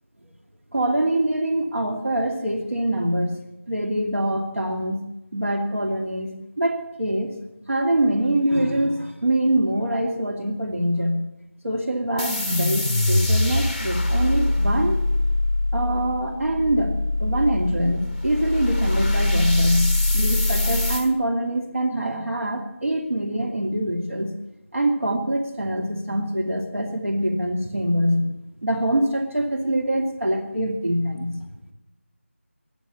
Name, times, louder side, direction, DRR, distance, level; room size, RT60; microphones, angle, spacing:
voice 1, 0.7-3.4 3.7-5.0 5.3-6.3 6.6-7.3 7.7-11.2 11.6-15.0 15.7-24.3 24.7-28.3 28.6-31.5, right 1 dB, 75° right, 2 dB, 2.5 m, -24 dB
sound 1, 12.2-21.1, left 2 dB, 35° left, 1.1 m, -23 dB
21.0 x 7.1 x 8.3 m, 0.91 s
figure-of-eight pair, 175°, 7 cm